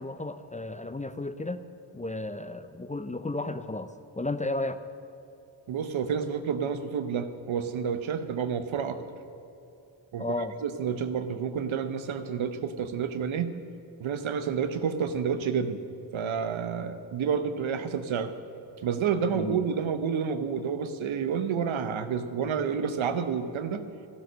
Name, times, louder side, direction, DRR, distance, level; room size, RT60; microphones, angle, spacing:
voice 1, 0.0-1.6 1.9-4.8 10.2-10.6 19.3-19.7, left 2 dB, 15° left, 11 dB, 0.5 m, -33 dB
voice 2, 5.7-9.0 10.1-10.3 10.6-13.5 14.0-15.8 16.1-18.3 18.8-23.8, right 7 dB, 85° right, 10 dB, 0.9 m, -29 dB
12.5 x 12.0 x 6.2 m, 2.8 s
cardioid pair, 75°, 46 cm